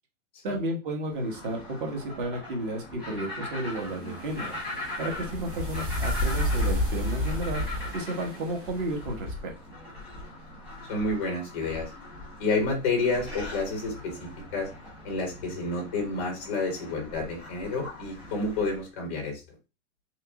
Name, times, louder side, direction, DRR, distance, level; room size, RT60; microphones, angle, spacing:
voice 1, 0.4-4.6 5.0-7.6 7.9-9.5, right 1 dB, 45° right, 2 dB, 1.1 m, -32 dB
sound 1, 1.1-18.8, left 2 dB, 5° right, 1.0 m, -40 dB
sound 2, 3.7-9.0, equal, 25° right, 1.2 m, -31 dB
voice 2, 10.9-11.9 12.4-14.1 14.5-14.7 15.0-19.4, left 3 dB, 10° left, 0 dB, 0.4 m, -29 dB
3.0 x 2.4 x 3.5 m, 0.29 s
hypercardioid pair, 170°, 36 cm